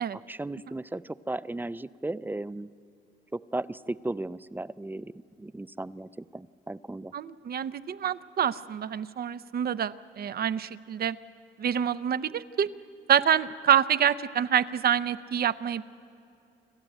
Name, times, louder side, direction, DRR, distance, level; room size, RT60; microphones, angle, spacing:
voice 1, 0.1-2.7 3.3-5.1 5.4-7.1, right 2 dB, 10° right, 17 dB, 0.4 m, -35 dB
voice 2, 7.1-11.2 11.6-12.7 13.1-15.8, right 9 dB, 50° right, 14 dB, 0.7 m, -26 dB
28.0 x 12.5 x 9.0 m, 2.7 s
cardioid pair, 90°, 20 cm